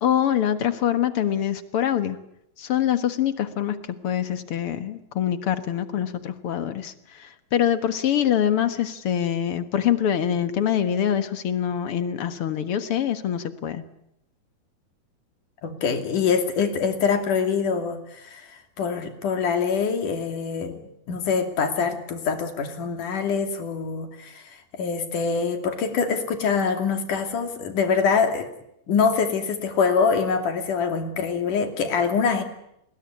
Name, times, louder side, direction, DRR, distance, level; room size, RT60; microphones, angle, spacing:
voice 1, 0.0-2.2 2.6-3.8 4.0-13.8, left 10 dB, 50° left, 10 dB, 2.1 m, -24 dB
voice 2, 15.6-20.8 21.1-28.5 28.9-32.4, left 5 dB, 75° left, 6 dB, 4.2 m, -24 dB
29.0 x 21.0 x 9.8 m, 0.80 s
omnidirectional pair, 3.6 m